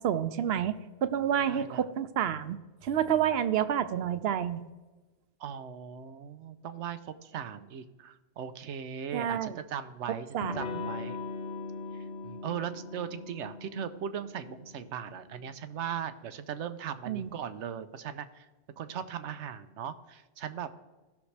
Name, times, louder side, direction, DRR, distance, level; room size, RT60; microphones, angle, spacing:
voice 1, 0.0-2.6 2.8-4.6 9.1-9.6 10.3-10.9 17.1-17.3, right 9 dB, 70° right, 13 dB, 0.8 m, -29 dB
voice 2, 1.5-1.8 5.4-11.2 11.9-18.5 18.8-20.7, right 8 dB, 90° right, 11 dB, 1.0 m, -38 dB
Electric guitar / Strum, 10.4-15.8, left 4 dB, 85° left, 1.0 m, -40 dB
16.5 x 6.3 x 3.3 m, 1.2 s
omnidirectional pair, 1.2 m